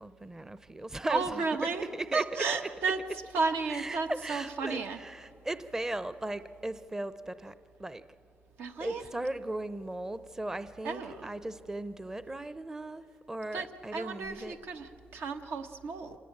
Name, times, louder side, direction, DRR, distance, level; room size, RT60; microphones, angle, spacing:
voice 1, 0.0-1.4 1.9-2.2 2.5-2.7 3.7-7.5 7.8-8.0 8.8-14.6, right 1 dB, 15° right, 13 dB, 0.6 m, -37 dB
voice 2, 1.1-1.8 2.1-3.0 3.3-5.0 8.6-9.0 10.8-11.3 13.5-16.2, right 4 dB, 80° right, 6 dB, 1.3 m, -33 dB
26.0 x 17.5 x 8.8 m, 2.8 s
cardioid pair, 100°, 4 cm